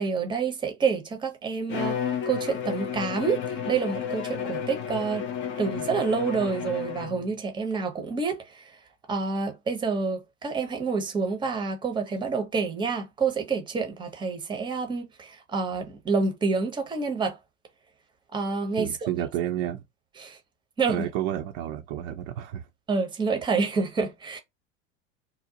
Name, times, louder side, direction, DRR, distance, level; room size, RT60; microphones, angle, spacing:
voice 1, 0.0-5.3 5.6-8.8 9.1-17.4 18.3-19.2 20.2-20.4 20.8-21.1 22.9-24.4, right 4 dB, 10° right, 0.7 m, -28 dB
Bowed string instrument, 1.7-7.3, left 8 dB, 30° left, 0.5 m, -32 dB
voice 2, 18.8-19.8 20.9-22.7, right 12 dB, 50° right, 0.5 m, -30 dB
2.6 x 2.0 x 2.7 m
figure-of-eight pair, 85°, 38 cm